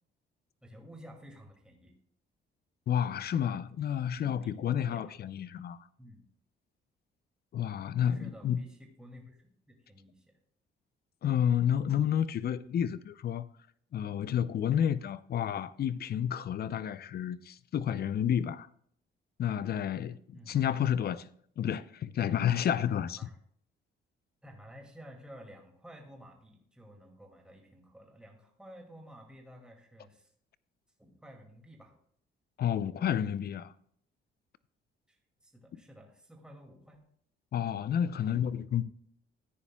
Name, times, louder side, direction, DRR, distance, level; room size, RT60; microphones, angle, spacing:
voice 1, 0.6-1.9 4.1-5.2 6.0-6.2 8.1-10.2 20.3-20.6 23.2-23.3 24.4-30.3 31.0-31.9 35.1-37.0, equal, 5° right, 2.3 m, -52 dB
voice 2, 2.9-5.8 7.5-8.6 11.2-13.5 13.9-18.7 19.4-21.3 21.6-23.2 32.6-33.7 37.5-38.9, left 9 dB, 50° left, 0.5 m, -30 dB
14.0 x 9.8 x 2.3 m
cardioid pair, 90°, 20 cm